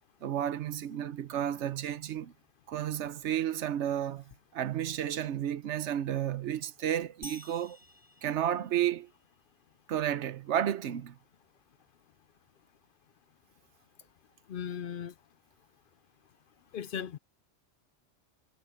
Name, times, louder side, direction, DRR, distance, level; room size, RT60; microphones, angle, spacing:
voice 1, 0.2-2.3 2.7-4.2 4.5-7.8 8.2-9.1 9.9-11.2, right 10 dB, 80° right, 1.1 m, -32 dB
sound 1, 7.2-9.2, equal, 15° left, 7.1 m, -50 dB
voice 2, 14.5-15.1 16.7-17.2, left 8 dB, 60° left, 0.6 m, -37 dB
omnidirectional pair, 1.2 m